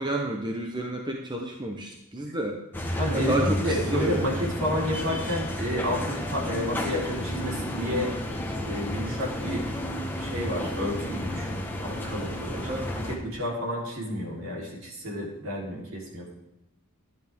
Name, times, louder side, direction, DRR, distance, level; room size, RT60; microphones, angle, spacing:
voice 1, 0.0-2.6 3.1-4.3 6.6-6.7 12.5-12.9, right 1 dB, 20° right, 2 dB, 0.9 m, -30 dB
sound 1, 2.7-13.2, left 1 dB, 10° left, 1.3 m, -31 dB
voice 2, 3.0-8.1 8.6-9.6 10.2-16.3, equal, 60° right, -2 dB, 3.7 m, -31 dB
12.0 x 10.5 x 3.6 m, 0.95 s
head